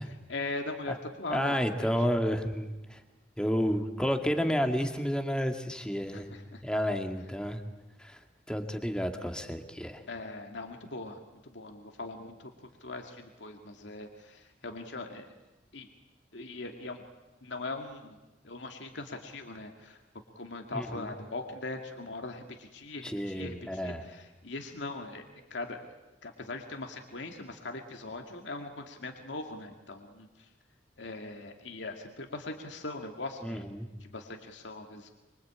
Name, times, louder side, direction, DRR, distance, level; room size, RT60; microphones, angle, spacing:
voice 1, 0.0-1.9 6.1-6.6 10.1-12.5 12.8-15.3 15.7-15.9 16.3-17.0 17.4-18.2 18.4-20.0 20.4-23.6 23.8-25.8 26.2-30.5 31.0-33.7 34.0-35.1, left 2 dB, 80° left, 3 dB, 2.3 m, -40 dB
voice 2, 1.3-3.0 3.4-6.4 6.6-7.6 8.0-8.2 8.5-10.0 20.7-21.1 23.0-24.0 33.4-33.9, equal, 5° left, 5 dB, 2.1 m, -31 dB
25.5 x 24.0 x 8.8 m, 1.1 s
head